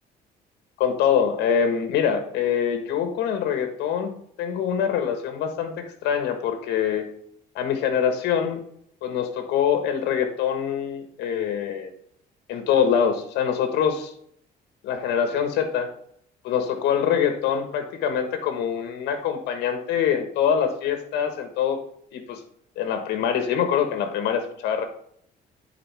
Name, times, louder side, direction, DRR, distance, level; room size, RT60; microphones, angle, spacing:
voice 1, 0.8-4.1 4.4-7.0 7.5-8.6 9.0-11.9 12.5-14.1 14.8-15.9 16.4-21.8 22.1-22.4 22.8-24.8, left 8 dB, 85° left, 7 dB, 1.5 m, -24 dB
10.0 x 5.0 x 3.5 m, 0.65 s
cardioid pair, 110°, 17 cm